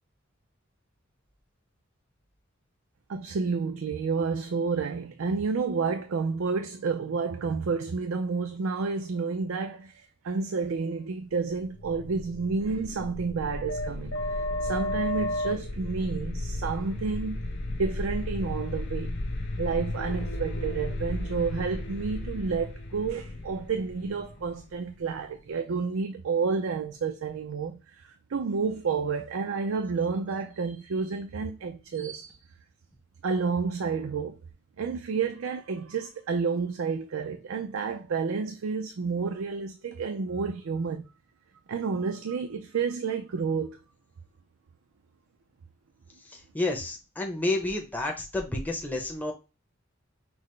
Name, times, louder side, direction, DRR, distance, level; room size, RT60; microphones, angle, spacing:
voice 1, 3.1-17.4 17.7-19.1 19.6-32.3 33.2-34.4 34.8-41.1 41.7-43.8, right 5 dB, 80° right, 0.5 m, -30 dB
sound 1, 11.6-25.3, left 1 dB, 60° left, 0.8 m, -34 dB
voice 2, 46.5-49.3, left 2 dB, 10° left, 0.7 m, -30 dB
6.0 x 2.1 x 3.2 m
head